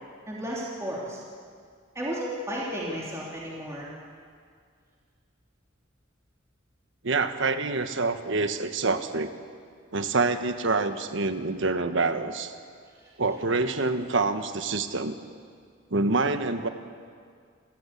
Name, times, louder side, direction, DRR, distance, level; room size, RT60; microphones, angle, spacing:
voice 1, 0.3-1.2 1.9-3.9, equal, 15° right, -6 dB, 3.3 m, -33 dB
voice 2, 7.0-9.3 9.9-12.5 13.2-15.1 15.9-16.7, right 3 dB, 70° right, 9 dB, 1.3 m, -26 dB
28.5 x 14.5 x 8.4 m, 2.1 s
head